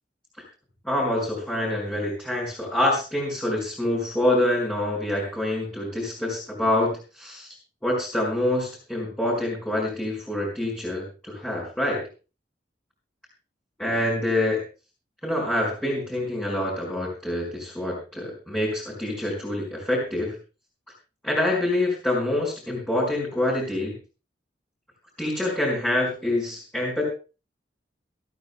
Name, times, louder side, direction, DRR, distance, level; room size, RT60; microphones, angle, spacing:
voice 1, 0.8-7.5 7.8-12.0 13.8-14.6 15.2-20.3 21.2-23.9 25.2-27.1, left 1 dB, 5° left, -5 dB, 5.1 m, -26 dB
27.0 x 9.2 x 2.2 m, 0.33 s
head